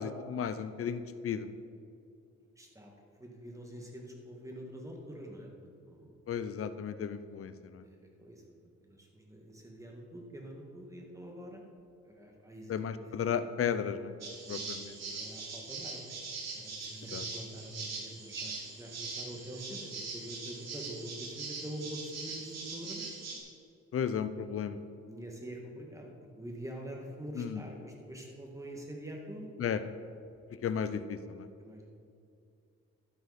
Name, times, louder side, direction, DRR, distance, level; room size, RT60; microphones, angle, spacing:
voice 1, 0.0-1.5 6.3-7.8 12.7-14.1 14.5-14.9 17.1-17.2 23.9-24.8 27.4-27.6 29.6-29.8 30.6-31.5, left 7 dB, 50° left, 12 dB, 0.7 m, -34 dB
voice 2, 2.6-2.9 3.2-6.1 7.8-8.4 8.8-11.6 12.0-13.2 14.5-16.3 16.5-23.2 25.0-29.5 31.6-31.9, right 1 dB, 10° right, 0 dB, 2.1 m, -45 dB
sound 1, 14.2-23.4, right 4 dB, 60° right, 2.8 m, -42 dB
12.0 x 10.0 x 4.3 m, 2.5 s
cardioid pair, 90°, 30 cm